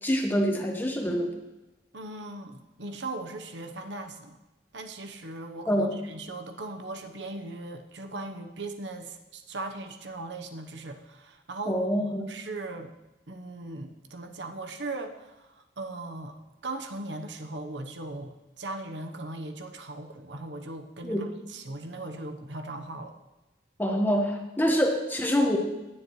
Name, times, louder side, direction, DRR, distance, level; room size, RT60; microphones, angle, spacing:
voice 1, 0.0-1.3 5.7-6.0 11.7-12.3 21.0-21.3 23.8-25.6, equal, 10° left, 2 dB, 1.4 m, -25 dB
voice 2, 1.9-4.4 4.7-12.9 13.3-16.4 16.6-23.1, right 2 dB, 80° right, 6 dB, 1.0 m, -39 dB
17.5 x 9.7 x 3.2 m, 1.1 s
head